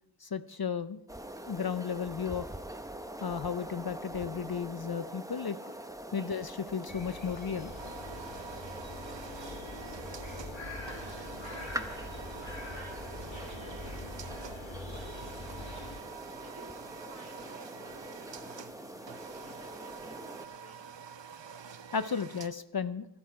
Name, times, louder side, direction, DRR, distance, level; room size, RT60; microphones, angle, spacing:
voice 1, 0.2-1.0 1.5-2.5 3.2-5.7 6.1-7.7 10.4-10.5 10.8-11.3 21.9-23.1, left 6 dB, 55° left, 13 dB, 0.6 m, -34 dB
sound 1, 1.1-20.5, right 1 dB, 5° right, 0.9 m, -44 dB
sound 2, 6.9-16.0, left 2 dB, 80° left, 1.9 m, -44 dB
sound 3, 7.8-22.5, right 6 dB, 65° right, 0.7 m, -48 dB
voice 2, 11.4-15.7 16.3-20.9, right 1 dB, 35° right, 0 dB, 3.1 m, -57 dB
13.5 x 12.0 x 4.7 m, 0.81 s
wide cardioid pair, 40°, 46 cm